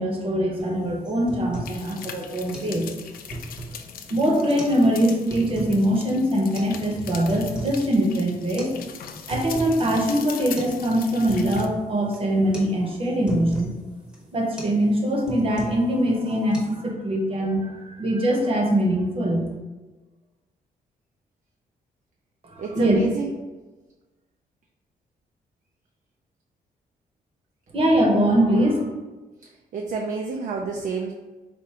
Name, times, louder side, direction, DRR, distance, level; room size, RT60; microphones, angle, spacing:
voice 1, 0.0-2.9 4.1-8.7 9.3-13.7 14.3-19.4 22.4-23.0 27.7-28.8, right 1 dB, 40° right, 0 dB, 0.9 m, -22 dB
sound 1, 0.6-0.7 1.0-1.8 2.1-2.2 2.5-2.7 3.1-3.9 4.4-4.8 5.1-5.8 6.5-6.7 7.1-7.8 8.1-8.2 8.6-8.7 9.1-9.8 10.1-10.2 10.6-10.8 11.0-11.8 12.1-12.3 12.5-12.7 13.0-13.7 14.1-14.3 14.6-14.8 15.1-15.9 16.2-16.6, right 1 dB, 5° right, 0.8 m, -35 dB
sound 2, 1.6-11.7, left 8 dB, 75° left, 0.4 m, -41 dB
voice 2, 22.6-23.3 29.7-31.1, right 4 dB, 55° right, 0 dB, 0.4 m, -29 dB
4.3 x 2.5 x 4.8 m, 1.2 s
wide cardioid pair, 175°, 15 cm